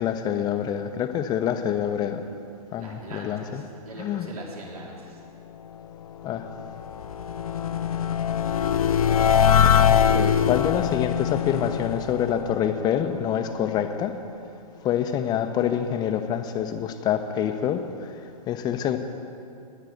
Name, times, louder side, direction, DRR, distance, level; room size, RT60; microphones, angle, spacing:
voice 1, 0.0-2.2 2.7-3.6 4.0-4.3 6.2-6.5 9.9-14.2 14.8-18.2 18.5-19.0, left 9 dB, 20° left, 8 dB, 0.7 m, -26 dB
voice 2, 2.8-5.2, right 2 dB, 70° right, -3 dB, 3.1 m, -41 dB
sound 1, 6.1-13.3, left 8 dB, 65° left, 0.6 m, -23 dB
10.5 x 10.0 x 7.9 m, 2.5 s
figure-of-eight pair, 110°, 20 cm